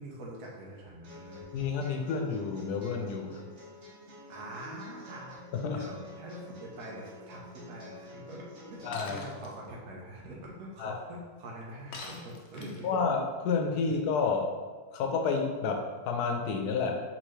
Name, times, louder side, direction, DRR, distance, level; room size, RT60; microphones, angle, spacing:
voice 1, 0.0-1.5 4.3-5.4 5.7-13.0, right 1 dB, 80° right, -3 dB, 1.3 m, -44 dB
sound 1, 1.0-9.0, left 1 dB, 60° right, 1.4 m, -49 dB
voice 2, 1.5-3.5 5.5-5.9 8.8-9.3 10.8-10.9 12.8-14.5 14.9-17.0, left 5 dB, 85° left, 3 dB, 1.2 m, -30 dB
Shatter, 8.9-9.5 11.9-13.0, left 3 dB, 60° left, 0.7 m, -44 dB
4.1 x 3.9 x 3.1 m, 1.4 s
omnidirectional pair, 1.6 m